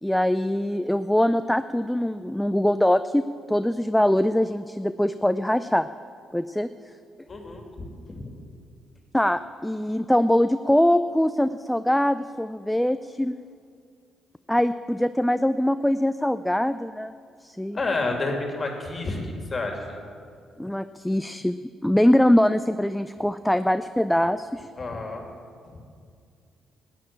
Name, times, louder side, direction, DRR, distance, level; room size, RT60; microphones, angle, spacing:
voice 1, 0.0-5.9 6.3-6.7 9.1-13.4 14.5-17.2 17.4-17.8 20.6-21.6 21.8-24.7, left 1 dB, 5° left, 11 dB, 0.4 m, -23 dB
voice 2, 7.3-8.3 17.7-19.2 19.5-20.0 24.8-25.2, left 3 dB, 30° left, 2 dB, 2.4 m, -30 dB
13.5 x 9.0 x 8.6 m, 2.2 s
cardioid pair, 90°, 0 cm